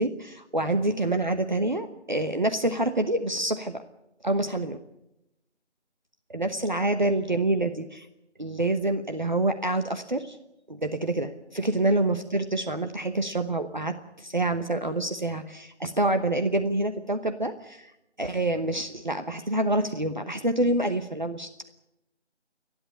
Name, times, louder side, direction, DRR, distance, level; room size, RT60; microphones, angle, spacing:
voice 1, 0.0-3.8 4.2-4.8 6.3-8.1 8.4-10.4 10.7-17.9 18.2-21.7, right 2 dB, 40° right, 7 dB, 1.1 m, -27 dB
29.5 x 11.0 x 9.8 m, 0.86 s
figure-of-eight pair, 175°, 35 cm